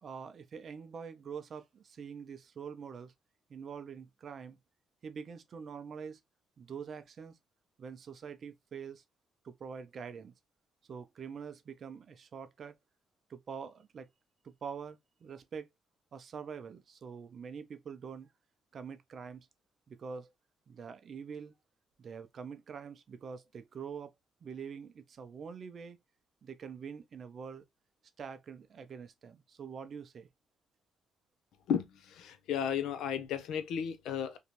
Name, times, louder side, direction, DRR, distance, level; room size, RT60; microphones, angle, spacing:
voice 1, 0.0-3.1 3.5-4.6 5.0-6.2 6.6-7.4 7.8-9.0 9.4-10.3 10.9-12.7 13.3-14.1 14.4-15.7 16.1-18.3 18.7-19.5 19.9-20.3 20.7-21.5 22.0-24.1 24.4-26.0 26.4-27.6 28.2-30.3, right 6 dB, 50° right, 0.5 m, -45 dB
voice 2, 31.7-34.4, left 8 dB, 85° left, 0.5 m, -34 dB
2.6 x 2.3 x 3.0 m
cardioid pair, 90°, 0 cm